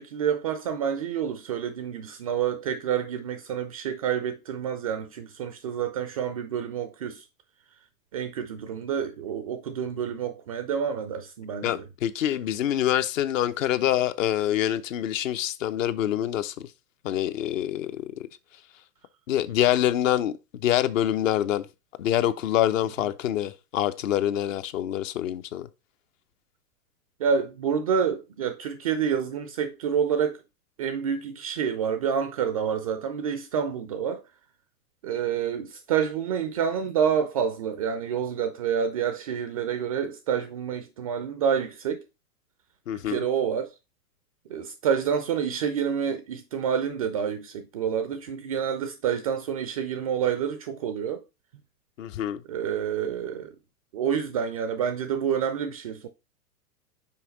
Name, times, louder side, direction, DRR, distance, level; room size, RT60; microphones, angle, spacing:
voice 1, 0.0-7.3 8.1-11.8 27.2-30.4 30.8-34.2 35.0-42.0 43.1-43.7 44.5-51.2 52.5-53.6 53.9-56.1, right 7 dB, 25° right, 0.3 m, -28 dB
voice 2, 11.6-16.7 17.0-18.3 19.3-21.7 22.0-25.7 42.9-43.3 52.0-52.4, left 12 dB, 55° left, 0.8 m, -26 dB
5.8 x 4.6 x 3.9 m
figure-of-eight pair, 100°, 48 cm